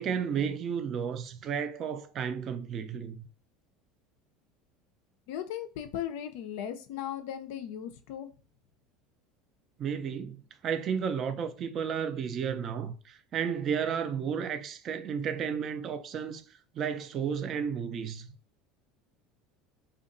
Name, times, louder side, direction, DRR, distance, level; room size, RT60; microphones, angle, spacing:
voice 1, 0.0-3.3 9.8-16.4 16.7-18.3, right 7 dB, 45° right, 0.3 m, -33 dB
voice 2, 5.3-8.3, left 10 dB, 65° left, 0.3 m, -37 dB
2.6 x 2.1 x 2.5 m
hypercardioid pair, 75°, 0 cm